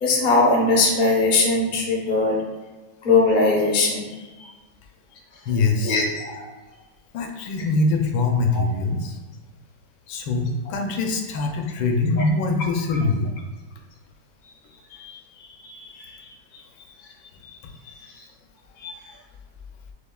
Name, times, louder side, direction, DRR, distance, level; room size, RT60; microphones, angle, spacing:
voice 1, 0.0-2.4 3.0-4.1 4.4-4.5 5.8-6.4 8.5-8.6 14.9-16.2 17.4-17.5 18.8-18.9, left 3 dB, 55° left, -2 dB, 0.5 m, -21 dB
voice 2, 5.5-6.0 7.1-9.2 10.1-13.3 16.5-16.6, left 3 dB, 80° left, 3 dB, 1.4 m, -23 dB
6.8 x 2.4 x 2.3 m, 1.3 s
omnidirectional pair, 2.1 m